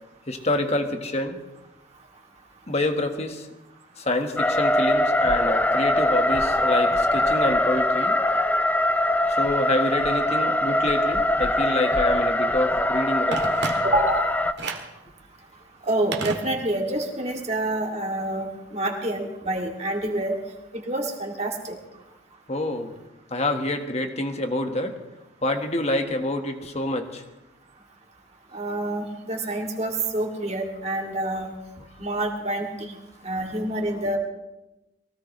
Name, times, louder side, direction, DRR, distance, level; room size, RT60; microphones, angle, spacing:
voice 1, 0.3-1.4 2.7-3.5 4.0-8.2 9.3-13.4 22.5-22.9 23.3-25.0 25.4-27.2, left 1 dB, 35° left, 5 dB, 1.4 m, -27 dB
sound 1, 4.4-14.5, left 1 dB, 10° left, 0.4 m, -22 dB
Telephone, 13.3-14.2 14.6-15.0 16.1-17.0 17.3-17.4, right 3 dB, 60° right, 1.8 m, -32 dB
voice 2, 13.8-14.2 15.9-20.4 20.9-21.7 28.5-31.5 32.0-33.0 33.2-34.2, right 1 dB, 35° right, 0 dB, 2.5 m, -27 dB
23.0 x 16.5 x 3.2 m, 1.0 s
head